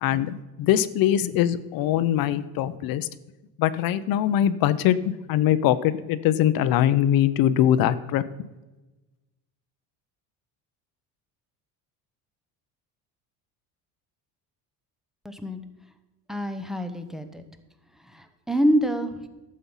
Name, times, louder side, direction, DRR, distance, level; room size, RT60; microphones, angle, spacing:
voice 1, 0.0-3.1 3.6-8.2, left 11 dB, 60° left, 15 dB, 0.7 m, -22 dB
voice 2, 15.2-15.6 16.3-17.4 18.5-19.1, equal, ahead, 8 dB, 0.8 m, -25 dB
12.0 x 7.7 x 5.6 m, 1.1 s
cardioid pair, 135°, 40 cm